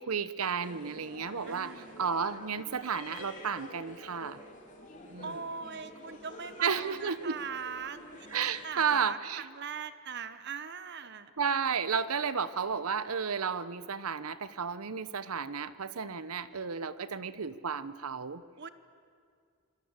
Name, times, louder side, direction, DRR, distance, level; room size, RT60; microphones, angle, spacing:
voice 1, 0.0-4.4 5.1-5.4 6.6-7.4 8.3-9.5 11.4-18.4, right 6 dB, 85° right, 15 dB, 0.9 m, -32 dB
sound 1, 0.6-8.7, left 1 dB, 35° left, 3.7 m, -49 dB
voice 2, 1.5-2.0 5.2-8.3 8.6-11.3 18.6-18.7, right 6 dB, 50° right, 12 dB, 1.0 m, -41 dB
27.0 x 21.5 x 8.2 m, 2.3 s
head